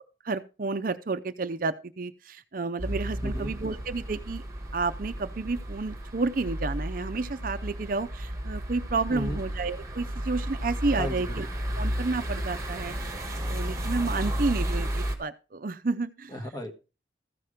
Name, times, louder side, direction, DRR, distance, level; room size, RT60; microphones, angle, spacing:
voice 1, 0.2-4.4 4.7-11.5 11.8-13.2 13.5-16.4, right 3 dB, 45° right, 11 dB, 0.5 m, -31 dB
sound 1, 2.8-15.2, equal, 15° right, 1.6 m, -33 dB
voice 2, 3.2-3.5 9.1-9.4 10.9-11.4 16.3-16.7, equal, 20° left, 3 dB, 1.4 m, -34 dB
14.5 x 5.9 x 5.0 m, 0.33 s
head